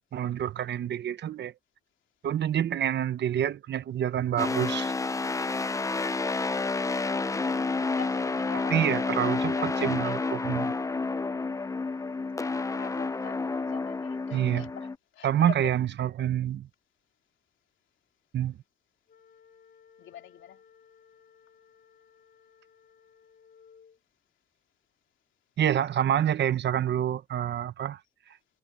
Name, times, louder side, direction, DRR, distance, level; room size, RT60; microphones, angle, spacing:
voice 1, 0.1-1.5 2.2-4.9 8.7-10.7 14.3-14.7 15.2-16.7 18.3-18.6 25.6-28.0, right 10 dB, 60° right, 1.1 m, -27 dB
sound 1, 4.4-15.0, left 3 dB, 15° left, 0.7 m, -30 dB
voice 2, 7.3-10.1 11.4-11.9 12.7-15.7 20.0-20.6, left 11 dB, 75° left, 2.9 m, -45 dB
sound 2, 19.1-24.0, left 7 dB, 55° left, 4.6 m, -59 dB
cardioid pair, 90°, 20 cm